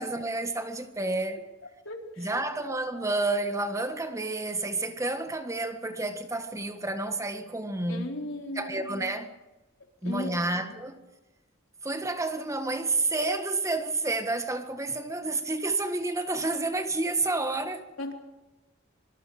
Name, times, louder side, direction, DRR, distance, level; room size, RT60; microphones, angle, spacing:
voice 1, 0.0-1.5 2.2-8.2 8.5-9.3 10.0-11.0 11.8-17.9, right 2 dB, 15° right, 1.6 m, -30 dB
voice 2, 1.8-2.3 7.9-9.1 10.0-10.7 18.0-18.1, left 1 dB, 75° left, 4.3 m, -37 dB
25.5 x 24.5 x 5.1 m
head